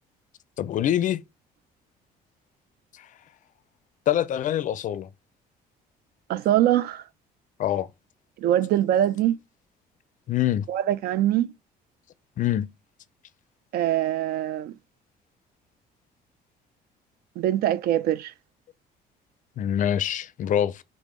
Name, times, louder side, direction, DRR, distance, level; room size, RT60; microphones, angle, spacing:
voice 1, 0.6-1.2 4.1-5.1 7.6-7.9 10.3-10.7 12.4-12.7 19.6-20.8, left 11 dB, 50° left, 0.4 m, -24 dB
voice 2, 6.3-7.0 8.4-9.4 10.7-11.5 13.7-14.7 17.4-18.3, right 12 dB, 65° right, 0.4 m, -23 dB
5.1 x 2.1 x 3.1 m
cardioid pair, 110°, 17 cm